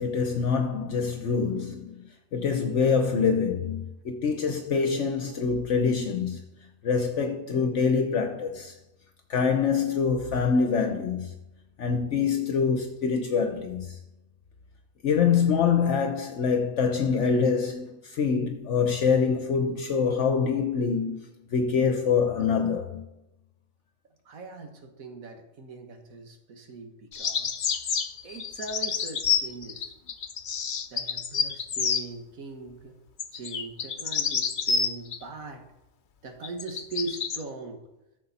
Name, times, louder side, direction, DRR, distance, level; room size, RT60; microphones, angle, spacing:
voice 1, 0.0-6.4 6.8-8.8 9.3-11.3 11.8-14.0 15.0-23.0, left 5 dB, 65° left, 1.1 m, -25 dB
voice 2, 24.3-27.6 28.2-29.9 30.9-33.0 33.3-35.7 36.2-37.8, right 3 dB, 90° right, 1.8 m, -40 dB
sound 1, 27.1-32.0 33.2-35.2 36.4-37.4, left 6 dB, 45° left, 0.7 m, -29 dB
14.0 x 6.4 x 4.1 m
omnidirectional pair, 1.4 m